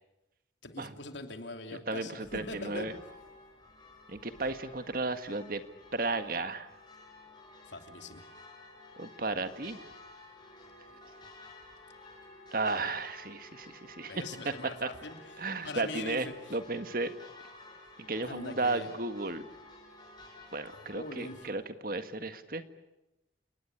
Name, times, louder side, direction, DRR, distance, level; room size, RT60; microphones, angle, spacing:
voice 1, 0.6-2.9 7.6-8.2 14.1-16.6 18.2-18.9 20.7-21.5, left 2 dB, 80° left, 6 dB, 3.2 m, -42 dB
voice 2, 1.9-2.9 4.1-5.6 5.9-6.7 9.0-9.8 12.5-14.5 14.8-14.9 15.4-17.1 18.0-19.5 20.5-22.6, right 3 dB, 50° right, 10 dB, 1.7 m, -34 dB
sound 1, 2.2-21.4, left 2 dB, 25° left, 7.4 m, -53 dB
29.5 x 19.5 x 9.8 m, 0.94 s
head